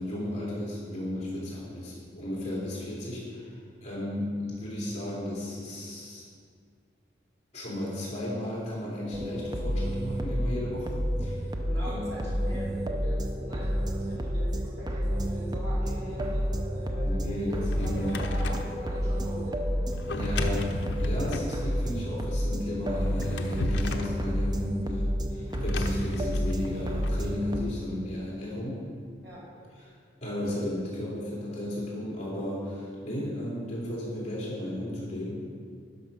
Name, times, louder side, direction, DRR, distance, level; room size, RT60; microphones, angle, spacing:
voice 1, 0.0-3.5 3.8-6.2 7.5-11.5 11.9-12.1 16.2-16.3 17.0-18.4 20.1-28.8 29.9-30.0 30.2-35.3, left 1 dB, 35° left, -6 dB, 2.8 m, -34 dB
sound 1, 9.1-27.6, equal, 20° right, 0.5 m, -30 dB
voice 2, 11.6-19.7 20.3-20.6 29.2-29.7, equal, 60° right, -8 dB, 2.8 m, -42 dB
Drawer open or close, 17.4-18.7 19.9-21.5 22.9-24.2 25.5-27.2, left 2 dB, 70° left, 0.7 m, -35 dB
11.5 x 5.9 x 5.4 m, 2.1 s
head